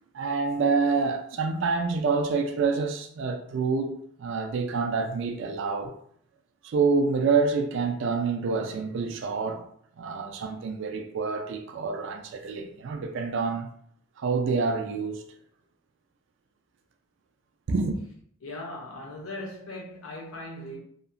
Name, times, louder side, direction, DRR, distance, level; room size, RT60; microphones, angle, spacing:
voice 1, 0.1-5.9 6.6-9.6 10.0-13.7 14.2-15.2 17.7-18.0, right 4 dB, 60° right, 0.3 m, -27 dB
voice 2, 18.4-20.8, left 1 dB, 75° left, 0.7 m, -39 dB
2.8 x 2.0 x 2.5 m
head